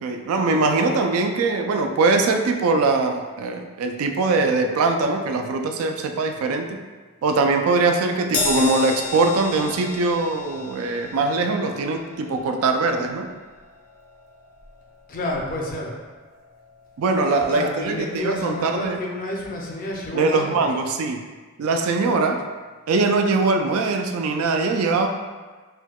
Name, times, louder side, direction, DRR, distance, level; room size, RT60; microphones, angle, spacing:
voice 1, 0.0-6.8 7.2-13.3 17.0-19.0 20.1-21.2 21.6-22.4 22.9-25.1, right 3 dB, 80° right, 5 dB, 0.3 m, -22 dB
Crash cymbal, 8.3-15.0 15.3-15.5 16.6-16.7, left 4 dB, 65° left, 0.8 m, -32 dB
voice 2, 15.1-15.9 17.4-20.7, left 1 dB, 40° left, -1 dB, 0.5 m, -29 dB
4.4 x 2.2 x 2.2 m, 1.4 s
head